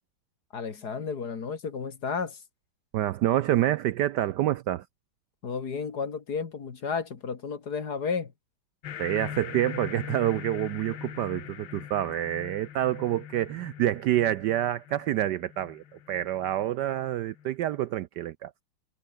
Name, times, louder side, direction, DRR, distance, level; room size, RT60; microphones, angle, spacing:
voice 1, 0.5-2.4 5.4-8.3, left 5 dB, 50° left, 2.5 m, -32 dB
voice 2, 2.9-4.8 9.0-18.6, right 13 dB, 70° right, 1.0 m, -27 dB
sound 1, 8.8-17.8, left 10 dB, 80° left, 2.1 m, -42 dB
omnidirectional pair, 2.2 m